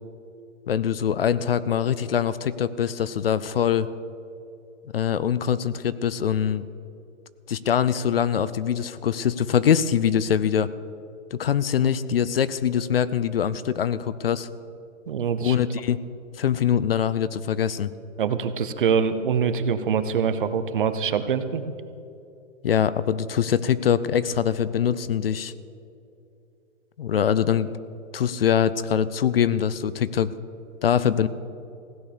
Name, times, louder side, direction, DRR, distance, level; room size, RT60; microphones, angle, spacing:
voice 1, 0.7-3.9 4.9-6.7 7.5-10.7 11.3-14.5 15.4-16.0 16.4-17.9 22.6-25.5 27.0-27.7 28.1-30.3 30.8-31.3, left 8 dB, 50° left, 16 dB, 0.5 m, -23 dB
voice 2, 15.1-15.6 18.2-21.6, right 6 dB, 45° right, 11 dB, 0.7 m, -24 dB
16.0 x 9.3 x 6.7 m, 2.7 s
hypercardioid pair, 175°, 37 cm